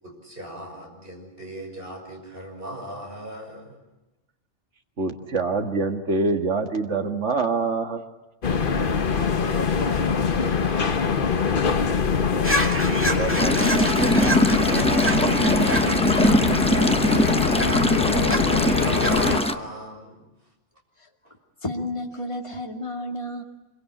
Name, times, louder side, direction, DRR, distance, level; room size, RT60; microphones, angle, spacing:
voice 1, 0.0-3.8 8.7-11.7 15.8-17.1 17.4-20.2, right 1 dB, 45° right, 2 dB, 6.3 m, -37 dB
voice 2, 5.0-8.0 13.0-15.4, right 4 dB, 70° right, 5 dB, 2.1 m, -27 dB
sound 1, 8.4-19.4, left 5 dB, 45° left, 1.2 m, -23 dB
sound 2, 12.4-19.4, equal, 10° right, 2.2 m, -29 dB
sound 3, 13.4-19.5, equal, 5° left, 0.7 m, -22 dB
voice 3, 21.6-23.4, left 1 dB, 25° left, 1 dB, 2.5 m, -31 dB
25.5 x 23.0 x 9.9 m, 1.0 s
omnidirectional pair, 1.3 m